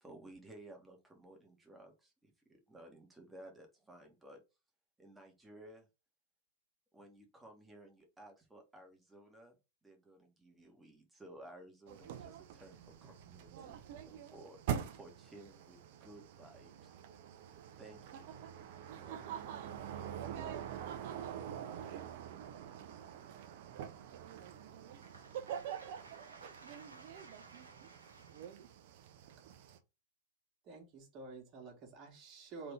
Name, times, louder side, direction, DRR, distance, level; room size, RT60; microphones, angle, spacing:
voice 1, 0.0-2.1 2.5-4.4 5.0-5.8 6.9-9.5 9.8-14.6 14.9-16.9 17.8-18.5 19.0-19.6, right 1 dB, 10° right, 1.5 m, -56 dB
sound 1, 11.9-29.8, right 9 dB, 50° right, 0.6 m, -45 dB
voice 2, 25.0-28.5, right 3 dB, 75° right, 1.2 m, -58 dB
voice 3, 30.7-32.7, right 4 dB, 35° right, 1.7 m, -50 dB
3.7 x 3.5 x 3.4 m
figure-of-eight pair, 90°, 0 cm